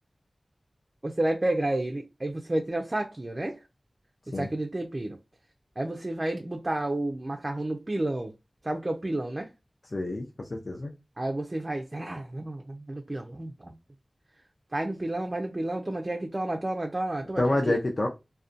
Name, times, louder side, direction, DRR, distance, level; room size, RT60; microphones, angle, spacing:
voice 1, 1.0-3.6 4.3-5.2 5.8-8.3 8.6-9.5 11.2-13.7 14.7-17.8, right 1 dB, 35° right, 0.3 m, -31 dB
voice 2, 9.9-10.9 17.4-18.1, left 2 dB, 45° left, 0.4 m, -27 dB
2.6 x 2.1 x 2.4 m
wide cardioid pair, 80°, 0 cm